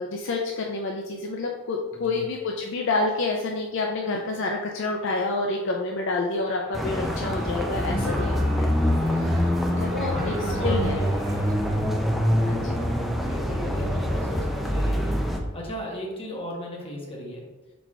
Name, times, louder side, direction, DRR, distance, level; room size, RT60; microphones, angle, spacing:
voice 1, 0.0-8.8 9.1-10.3 10.6-11.0 11.7-11.9 12.4-12.8, left 3 dB, 65° left, 1 dB, 0.4 m, -28 dB
voice 2, 1.9-2.2 8.0-8.5 10.1-11.8 12.4-17.4, equal, 30° left, -2 dB, 0.9 m, -36 dB
Shout / Cheering, 6.4-11.8, right 1 dB, 70° right, 1.0 m, -40 dB
sound 1, 6.7-15.4, equal, ahead, 0.4 m, -25 dB
4.3 x 4.1 x 2.3 m, 1.2 s
head